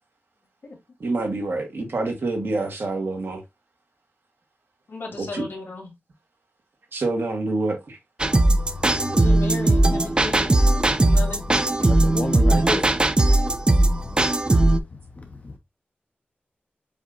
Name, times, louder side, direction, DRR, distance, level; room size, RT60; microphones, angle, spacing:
voice 1, 1.0-3.4 5.2-5.5 6.9-8.0, right 2 dB, 70° right, 1.4 m, -27 dB
voice 2, 4.9-5.9 9.1-10.6 11.0-11.9, left 3 dB, 70° left, 2.0 m, -35 dB
sound 1, 8.2-14.8, right 2 dB, 25° right, 0.4 m, -19 dB
voice 3, 8.6-9.4 9.6-9.7 10.3-11.2 11.5-13.0 14.0-15.6, left 3 dB, 40° left, 0.6 m, -35 dB
7.1 x 2.8 x 2.4 m
wide cardioid pair, 115°, 4 cm